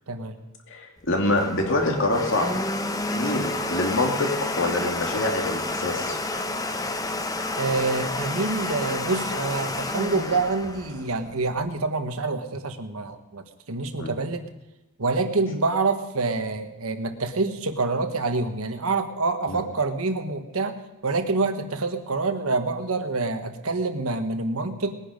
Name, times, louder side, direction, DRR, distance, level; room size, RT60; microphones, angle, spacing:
voice 1, 0.7-2.5 3.1-4.3 4.6-6.2 6.7-6.8 14.0-14.1 19.5-19.6, left 2 dB, 60° left, 2 dB, 2.6 m, -25 dB
Domestic sounds home sounds, 1.0-11.7, left 2 dB, 15° left, 0.8 m, -30 dB
voice 2, 7.6-14.4 15.0-20.7 21.0-25.0, right 3 dB, 80° right, 8 dB, 1.3 m, -26 dB
20.0 x 10.0 x 5.3 m, 1.0 s
head